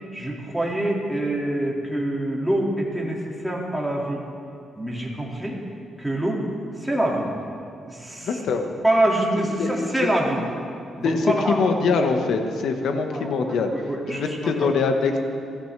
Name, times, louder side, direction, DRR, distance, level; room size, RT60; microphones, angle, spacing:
voice 1, 0.1-4.2 4.8-5.6 6.0-6.4 6.8-7.3 7.8-8.3 8.8-10.4 11.0-11.5 13.1-14.7, right 1 dB, ahead, -3 dB, 2.3 m, -25 dB
voice 2, 8.2-8.7 9.4-9.9 11.0-13.7 14.1-15.2, left 4 dB, 75° left, 4 dB, 1.4 m, -23 dB
23.5 x 14.0 x 3.4 m, 2.5 s
cardioid pair, 120°, 0 cm